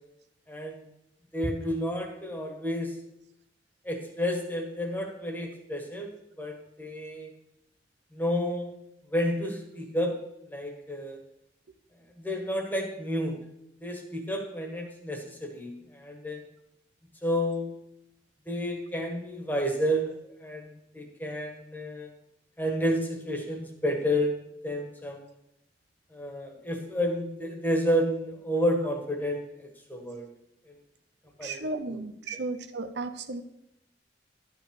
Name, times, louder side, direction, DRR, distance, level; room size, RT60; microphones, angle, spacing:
voice 1, 0.5-0.9 1.3-3.0 3.8-6.1 6.4-7.3 8.1-8.7 9.1-10.1 10.5-11.2 12.2-13.4 13.8-16.4 17.2-17.7 18.5-22.1 22.6-24.4 24.6-25.3 26.1-30.3 30.7-30.8 31.4-31.7 32.3-32.5, equal, 10° left, 2 dB, 1.7 m, -30 dB
voice 2, 31.4-33.4, right 3 dB, 75° right, 9 dB, 0.7 m, -34 dB
11.5 x 5.9 x 6.5 m, 0.78 s
head